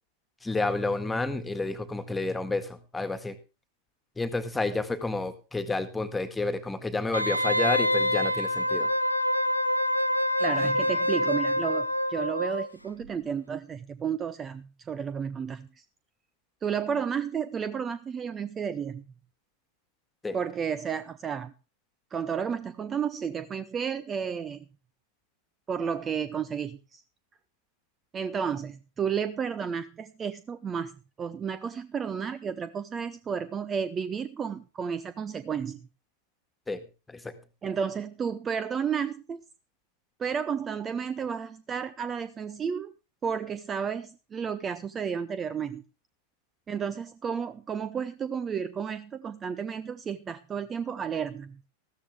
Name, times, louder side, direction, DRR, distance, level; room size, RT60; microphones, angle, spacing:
voice 1, 0.4-3.4 4.1-8.9 10.6-10.7 20.2-20.4 36.7-36.8 37.1-37.3, left 3 dB, 10° left, 10 dB, 1.8 m, -30 dB
Wind instrument woodwind instrument, 7.1-12.7 13.0-13.1, left 1 dB, 90° left, 1.1 m, -26 dB
voice 2, 10.4-15.8 16.6-19.0 20.3-21.5 22.1-24.7 25.7-27.0 28.1-30.9 31.2-35.9 37.6-39.4 40.2-42.9 43.2-45.8 46.7-51.6, right 7 dB, 20° right, 15 dB, 0.7 m, -32 dB
14.5 x 13.5 x 3.5 m, 0.33 s
figure-of-eight pair, 90°, 0 cm